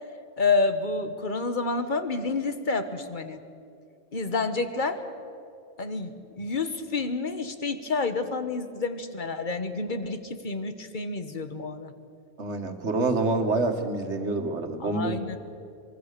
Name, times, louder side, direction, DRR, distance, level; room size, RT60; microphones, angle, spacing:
voice 1, 0.4-3.4 4.1-5.0 5.8-11.9 14.8-15.4, left 3 dB, 45° left, 9 dB, 1.5 m, -29 dB
voice 2, 12.4-15.4, right 3 dB, 85° right, 6 dB, 2.0 m, -27 dB
24.0 x 22.5 x 6.8 m, 2.4 s
omnidirectional pair, 1.2 m